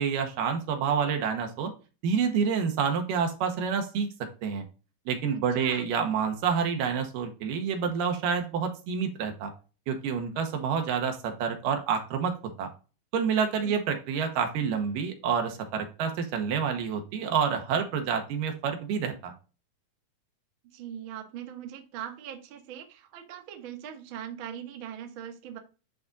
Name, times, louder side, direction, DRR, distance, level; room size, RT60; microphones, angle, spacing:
voice 1, 0.0-1.7 2.0-4.1 4.4-4.6 5.1-9.5 9.9-12.7 13.1-19.3, right 6 dB, 85° right, 5 dB, 2.7 m, -28 dB
voice 2, 5.3-5.9 13.6-13.8 20.7-25.6, right 9 dB, 65° right, 4 dB, 1.2 m, -41 dB
10.5 x 3.6 x 2.5 m, 0.34 s
omnidirectional pair, 3.9 m